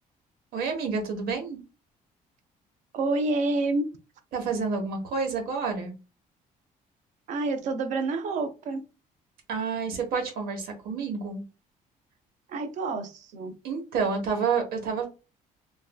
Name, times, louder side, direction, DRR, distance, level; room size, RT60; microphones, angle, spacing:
voice 1, 0.5-1.6 4.3-5.9 9.5-11.4 13.6-15.1, right 5 dB, 90° right, 3 dB, 1.1 m, -29 dB
voice 2, 2.9-3.9 7.3-8.8 12.5-13.5, right 3 dB, 55° right, 8 dB, 0.5 m, -28 dB
3.1 x 2.5 x 2.2 m, 0.31 s
cardioid pair, 180°, 15 cm